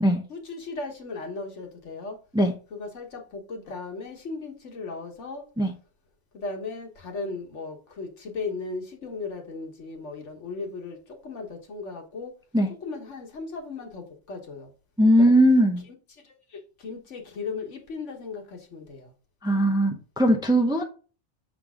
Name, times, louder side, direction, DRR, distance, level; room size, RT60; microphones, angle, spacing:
voice 1, 0.3-2.2 2.7-5.5 6.3-12.3 12.8-14.7 15.2-15.3 16.8-19.1, left 3 dB, 70° left, 1.6 m, -36 dB
voice 2, 15.0-15.8 19.4-20.8, equal, 5° right, 0.6 m, -19 dB
6.7 x 3.9 x 3.5 m
omnidirectional pair, 1.3 m